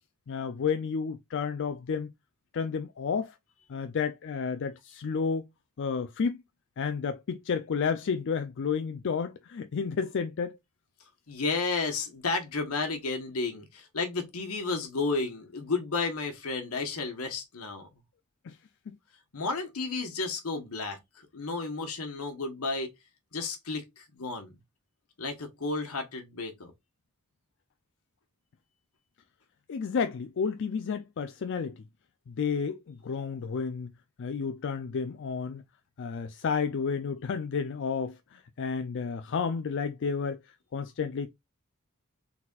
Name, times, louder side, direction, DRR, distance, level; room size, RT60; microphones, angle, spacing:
voice 1, 0.3-2.1 2.5-3.3 3.7-5.5 5.8-6.4 6.8-10.6 18.4-18.6 18.9-19.0 29.7-31.8 32.3-33.9 34.2-35.6 36.0-40.4 40.7-41.3, left 5 dB, 55° left, 0.4 m, -31 dB
voice 2, 11.3-17.9 19.3-22.9 23.3-24.5 25.2-26.7, left 3 dB, 80° left, 1.3 m, -32 dB
4.1 x 4.1 x 2.3 m
head